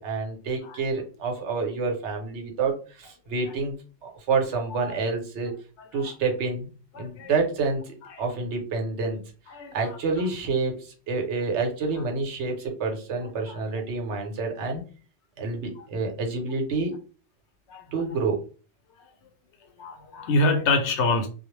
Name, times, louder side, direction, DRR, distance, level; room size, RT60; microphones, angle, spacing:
voice 1, 0.0-3.7 4.0-5.5 5.9-6.7 7.0-9.2 9.7-14.8 15.4-16.9 17.9-18.4, right 4 dB, 80° right, 2 dB, 1.0 m, -28 dB
voice 2, 6.9-7.3 8.1-8.2 9.5-9.8 13.5-13.6 17.7-17.8 19.8-21.3, left 2 dB, 80° left, 4 dB, 0.9 m, -26 dB
2.3 x 2.0 x 3.0 m, 0.37 s
omnidirectional pair, 1.2 m